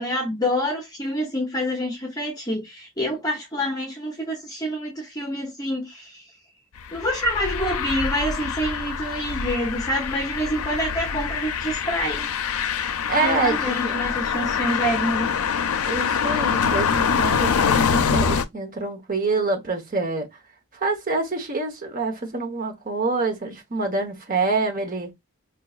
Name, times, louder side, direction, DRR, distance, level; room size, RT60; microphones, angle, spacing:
voice 1, 0.0-6.2 6.9-12.3 13.2-15.3, equal, 15° left, 0.7 m, -27 dB
sound 1, 6.8-18.4, left 6 dB, 80° left, 0.5 m, -25 dB
voice 2, 13.1-13.9 15.8-20.3 20.7-25.1, right 3 dB, 40° right, 1.0 m, -26 dB
4.6 x 2.8 x 2.3 m
head